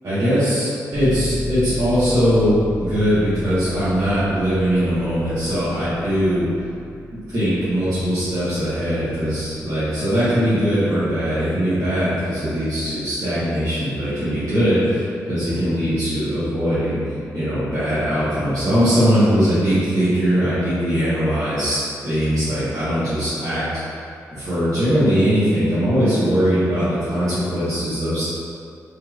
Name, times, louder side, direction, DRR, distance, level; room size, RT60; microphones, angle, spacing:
voice 1, 0.0-6.5 7.3-17.0 17.3-23.6 24.3-28.3, equal, 55° right, -16 dB, 1.3 m, -20 dB
sound 1, 0.9-11.5, left 1 dB, 40° left, 0.9 m, -33 dB
3.3 x 3.0 x 2.4 m, 2.5 s
supercardioid pair, 50°, 7 cm